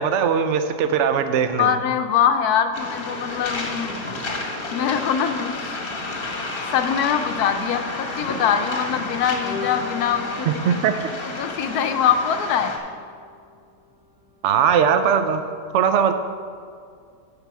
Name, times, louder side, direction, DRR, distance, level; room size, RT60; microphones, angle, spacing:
voice 1, 0.0-1.7 10.6-10.9 14.4-15.4 15.7-16.1, right 7 dB, 65° right, 9 dB, 0.7 m, -19 dB
voice 2, 1.6-4.0 4.7-5.8 6.7-10.8 11.2-12.7, left 8 dB, 75° left, 8 dB, 1.1 m, -23 dB
Waves surf, 2.7-12.8, left 2 dB, 40° left, 1.1 m, -31 dB
sound 1, 9.4-13.5, left 3 dB, 80° right, 2.3 m, -39 dB
11.5 x 5.4 x 4.6 m, 2.2 s
omnidirectional pair, 1.7 m